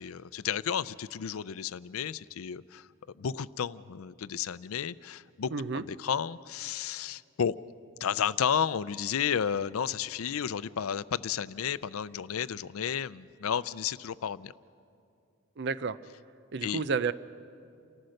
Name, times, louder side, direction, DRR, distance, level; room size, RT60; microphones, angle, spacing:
voice 1, 0.0-2.9 3.2-7.5 8.0-14.5 16.6-16.8, left 8 dB, 90° left, 18 dB, 0.5 m, -32 dB
voice 2, 5.5-5.8 15.6-16.0 16.5-17.1, right 5 dB, 55° right, 15 dB, 0.6 m, -30 dB
29.0 x 14.5 x 6.5 m, 2.5 s
head